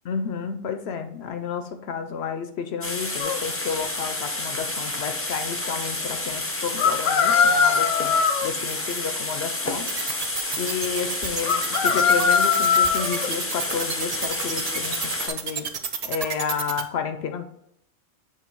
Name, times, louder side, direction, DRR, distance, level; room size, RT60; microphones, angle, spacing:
voice 1, 0.0-8.1 8.4-9.9 10.6-15.7 16.0-17.4, left 6 dB, 65° left, 8 dB, 0.7 m, -31 dB
sound 1, 2.8-15.3, left 2 dB, 20° left, 0.4 m, -30 dB
sound 2, 3.2-3.4 6.8-8.5 11.4-13.3, left 6 dB, 85° left, 1.1 m, -21 dB
sound 3, 9.9-16.8, right 6 dB, 55° right, 0.4 m, -30 dB
7.4 x 3.2 x 4.5 m, 0.74 s
omnidirectional pair, 1.3 m